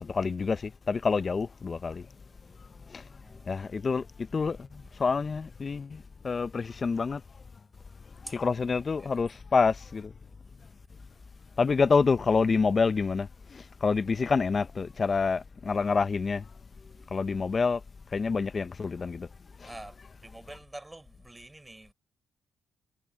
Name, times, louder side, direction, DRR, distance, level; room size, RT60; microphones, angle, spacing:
voice 1, 0.0-2.1 2.9-3.0 3.5-7.2 8.2-10.1 11.6-16.4 17.1-17.8 18.1-19.3, left 4 dB, 35° left, 0.7 m, -27 dB
voice 2, 3.2-3.6 4.8-4.9 8.3-8.4 9.0-9.4 14.1-14.5 19.6-21.9, right 2 dB, 10° right, 5.3 m, -47 dB
cardioid pair, 90°, 0 cm